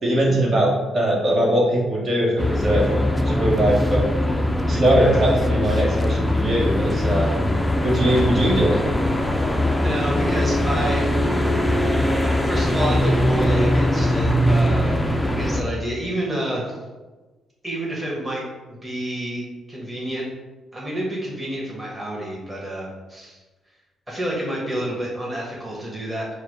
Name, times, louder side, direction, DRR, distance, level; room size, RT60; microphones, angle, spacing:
voice 1, 0.0-4.1 4.7-7.3 7.8-8.8, right 1 dB, 45° right, -5 dB, 1.3 m, -21 dB
sound 1, 2.4-15.6, left 1 dB, 10° left, 0.4 m, -21 dB
voice 2, 9.7-11.8 12.2-15.0 15.2-16.8 17.6-18.4 18.7-20.2 20.7-23.4 24.1-26.3, right 1 dB, 10° right, -5 dB, 1.3 m, -29 dB
4.6 x 2.1 x 4.6 m, 1.2 s
cardioid pair, 90°, 0 cm